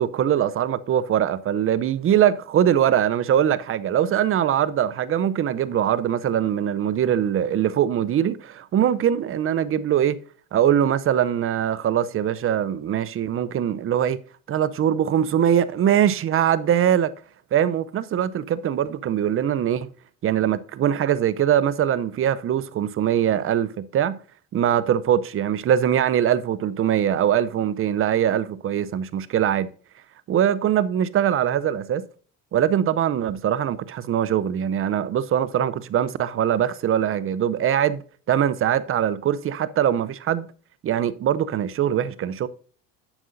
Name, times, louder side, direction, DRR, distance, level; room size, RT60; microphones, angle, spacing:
voice 1, 0.0-10.2 10.5-14.2 14.5-17.1 17.5-19.9 20.2-24.2 24.5-29.7 30.3-32.0 32.5-38.0 38.3-40.5 40.8-42.5, right 10 dB, 35° right, 0.6 m, -22 dB
11.0 x 7.4 x 2.6 m
supercardioid pair, 85°, 39 cm